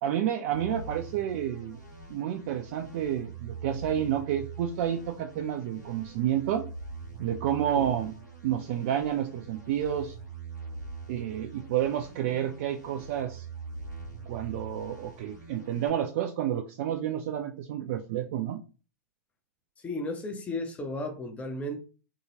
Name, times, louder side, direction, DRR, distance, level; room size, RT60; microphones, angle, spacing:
voice 1, 0.0-1.8 2.1-6.7 7.2-8.1 8.4-10.2 11.1-13.5 14.3-18.6, right 10 dB, 45° right, 0.4 m, -30 dB
sound 1, 0.5-15.9, right 4 dB, 85° left, 1.5 m, -43 dB
voice 2, 19.8-21.8, left 1 dB, 15° left, 0.6 m, -34 dB
2.8 x 2.6 x 2.8 m
figure-of-eight pair, 100°, 9 cm